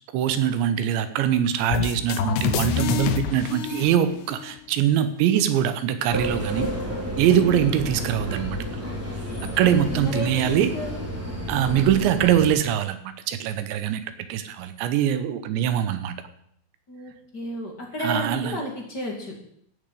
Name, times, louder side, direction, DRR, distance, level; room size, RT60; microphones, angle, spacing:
voice 1, 0.1-6.7 7.2-8.6 9.6-10.7 11.5-14.0 14.3-16.1 18.0-18.6, right 10 dB, 75° right, 11 dB, 3.0 m, -23 dB
sound 1, 1.7-4.6, left 9 dB, 75° left, 2.6 m, -27 dB
sound 2, 6.1-12.5, equal, 5° right, 1.4 m, -31 dB
voice 2, 7.3-7.7 9.7-11.0 11.6-12.1 16.9-19.4, left 1 dB, 35° left, 0 dB, 1.6 m, -33 dB
15.5 x 6.8 x 8.3 m, 0.69 s
omnidirectional pair, 5.7 m